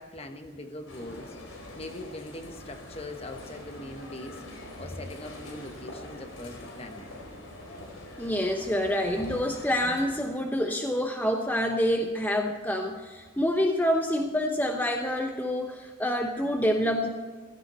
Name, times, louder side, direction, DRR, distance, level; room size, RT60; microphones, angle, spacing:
voice 1, 0.0-7.1, left 1 dB, 30° left, 5 dB, 1.2 m, -42 dB
sound 1, 0.9-10.0, left 1 dB, 85° left, 4.4 m, -44 dB
voice 2, 8.2-17.1, equal, 10° left, 2 dB, 0.9 m, -27 dB
16.0 x 15.0 x 4.4 m, 1.5 s
head